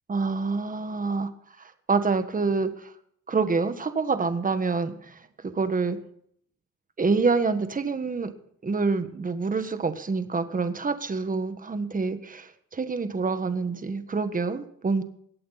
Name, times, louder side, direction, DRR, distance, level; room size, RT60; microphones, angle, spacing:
voice 1, 0.1-1.3 1.6-2.9 3.3-6.0 7.0-8.3 8.6-15.0, right 4 dB, 25° right, 10 dB, 1.5 m, -27 dB
21.5 x 8.6 x 4.1 m, 0.66 s
cardioid pair, 90°, 30 cm